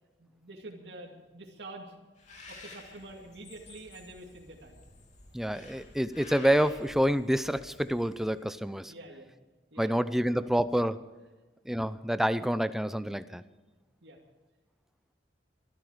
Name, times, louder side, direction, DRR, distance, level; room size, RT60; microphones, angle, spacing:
voice 1, 0.2-1.9 2.5-4.8 8.8-9.3 9.7-9.9 14.0-14.2, right 2 dB, 70° right, -1 dB, 2.5 m, -47 dB
Bird, 2.2-8.6, left 3 dB, 40° left, 3.1 m, -51 dB
voice 2, 5.3-8.9 9.8-11.0 11.7-13.4, equal, ahead, 13 dB, 0.5 m, -28 dB
24.0 x 12.0 x 5.0 m, 1.2 s
head